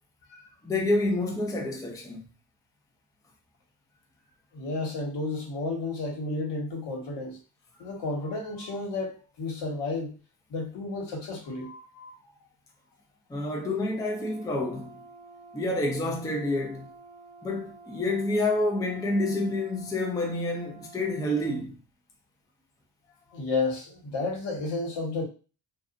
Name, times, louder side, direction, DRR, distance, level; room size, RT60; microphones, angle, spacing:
voice 1, 0.6-2.2 13.3-15.0 15.5-16.9 17.4-21.8, left 2 dB, 10° left, 0.5 m, -28 dB
voice 2, 4.5-7.4 7.8-10.2 10.5-12.2 23.3-25.2, left 3 dB, 65° left, 1.3 m, -32 dB
Brass instrument, 13.9-21.6, right 3 dB, 20° right, 0.9 m, -50 dB
2.5 x 2.4 x 2.5 m
supercardioid pair, 85°, 46 cm